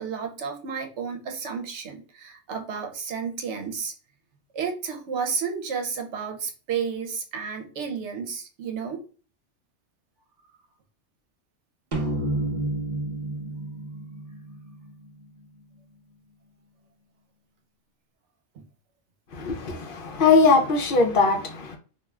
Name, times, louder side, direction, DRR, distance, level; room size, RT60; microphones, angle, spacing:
voice 1, 0.0-3.9 4.5-9.0, right 6 dB, 75° right, 0.9 m, -32 dB
sound 1, 11.9-15.4, right 1 dB, 45° right, 0.5 m, -30 dB
voice 2, 19.3-21.8, left 4 dB, 60° left, 0.6 m, -20 dB
2.3 x 2.3 x 3.1 m
omnidirectional pair, 1.2 m